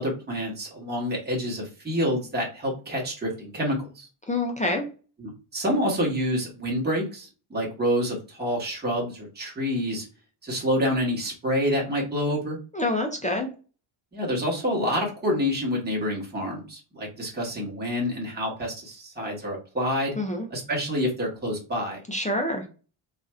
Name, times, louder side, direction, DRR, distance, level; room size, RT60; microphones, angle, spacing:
voice 1, 0.0-4.1 5.2-10.0 10.4-12.6 14.1-20.2 20.5-22.0, equal, 20° right, -2 dB, 1.1 m, -27 dB
voice 2, 4.3-4.9 12.7-13.5 20.2-20.5 22.1-22.7, left 2 dB, 15° left, 2 dB, 0.3 m, -26 dB
2.5 x 2.4 x 4.1 m, 0.34 s
wide cardioid pair, 175°, 49 cm